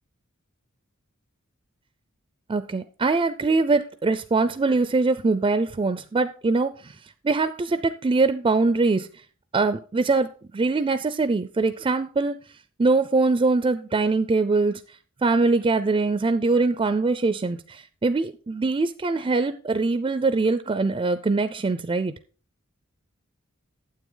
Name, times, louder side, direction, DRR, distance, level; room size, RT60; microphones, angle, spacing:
voice 1, 2.5-7.0 7.2-9.1 9.5-12.4 12.8-14.8 15.2-22.1, right 3 dB, 25° right, 11 dB, 0.4 m, -23 dB
9.2 x 7.7 x 3.8 m, 0.39 s
head